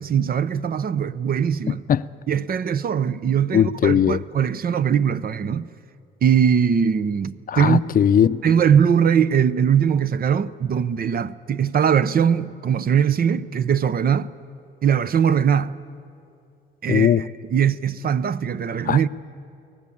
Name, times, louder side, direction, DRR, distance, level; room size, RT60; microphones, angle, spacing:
voice 1, 0.0-1.8 2.3-5.7 6.2-7.8 8.4-14.3 14.8-15.8 16.8-17.2 17.5-19.1, right 8 dB, 50° right, 0.7 m, -21 dB
voice 2, 1.7-2.0 3.5-4.2 7.5-8.4 16.9-17.2 18.9-19.0, left 9 dB, 45° left, 0.5 m, -19 dB
24.5 x 18.0 x 8.6 m
cardioid pair, 90°, 20 cm